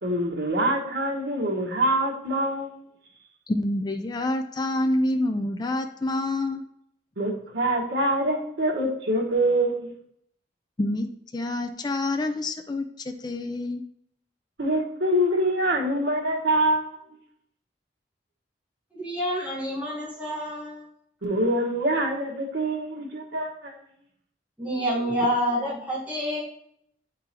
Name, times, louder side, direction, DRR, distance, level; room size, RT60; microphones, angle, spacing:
voice 1, 0.0-2.8 7.2-9.9 14.6-17.0 21.2-23.8, right 1 dB, 85° right, -1 dB, 1.4 m, -25 dB
voice 2, 3.5-6.6 10.8-11.1 11.3-13.8, left 1 dB, 25° left, 5 dB, 0.4 m, -27 dB
voice 3, 18.9-20.8 24.6-26.4, equal, 10° right, -6 dB, 1.3 m, -28 dB
9.3 x 3.8 x 2.9 m, 0.71 s
head